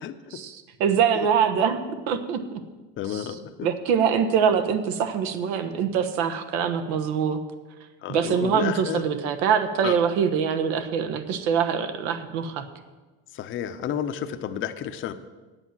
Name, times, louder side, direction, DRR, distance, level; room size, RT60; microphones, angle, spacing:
voice 1, 0.3-2.6 3.1-3.3 3.6-7.4 8.1-12.7, right 7 dB, 85° right, 9 dB, 1.1 m, -24 dB
voice 2, 3.0-3.7 8.0-9.0 9.8-10.0 13.3-15.1, left 9 dB, 40° left, 8 dB, 0.7 m, -31 dB
8.9 x 8.2 x 7.3 m, 1.2 s
supercardioid pair, 115°, 31 cm